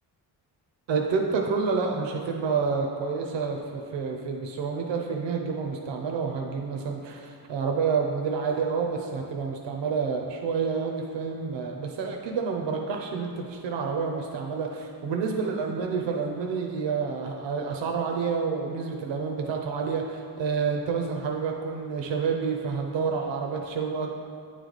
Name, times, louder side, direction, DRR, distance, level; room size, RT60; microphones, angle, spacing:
voice 1, 0.9-24.1, right 5 dB, 85° right, 1 dB, 0.6 m, -29 dB
9.2 x 3.2 x 3.9 m, 2.3 s
wide cardioid pair, 150°, 43 cm